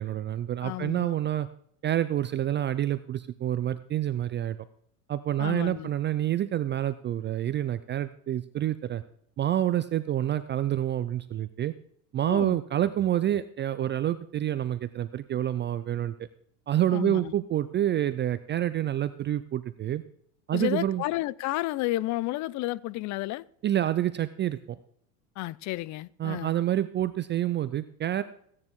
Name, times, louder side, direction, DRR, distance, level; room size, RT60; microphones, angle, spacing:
voice 1, 0.0-1.5 1.8-4.6 5.1-9.0 9.4-11.7 12.1-16.1 16.7-20.0 20.5-21.0 23.6-24.8 26.2-28.2, right 12 dB, 25° right, 0.4 m, -28 dB
voice 2, 0.6-1.1 5.4-5.9 12.3-12.6 16.9-17.3 20.5-23.4 25.4-26.5, left 17 dB, 40° left, 0.5 m, -31 dB
16.0 x 9.8 x 3.7 m
supercardioid pair, 105°, 47 cm